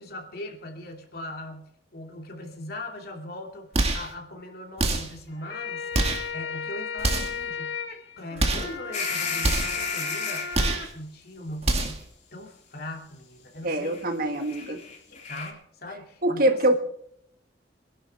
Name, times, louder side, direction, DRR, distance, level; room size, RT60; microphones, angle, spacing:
voice 1, 0.0-5.9 6.3-7.7 8.2-12.0 12.3-14.1 14.3-16.8, left 1 dB, 60° left, 1 dB, 2.8 m, -40 dB
sound 1, 3.7-4.1 4.8-5.2 5.9-6.3 7.0-7.4 8.4-8.8 9.4-9.8 10.5-10.9 11.6-12.1, right 2 dB, 35° right, 2.0 m, -25 dB
sound 2, 5.3-10.9, left 5 dB, 75° left, 2.5 m, -35 dB
sound 3, 8.9-10.6 11.7-11.9 13.8-14.0 14.3-15.5, left 5 dB, 45° left, 3.2 m, -32 dB
voice 2, 13.6-14.8 16.2-16.8, right 1 dB, 55° right, 5 dB, 1.9 m, -24 dB
25.5 x 11.5 x 3.6 m, 0.67 s
head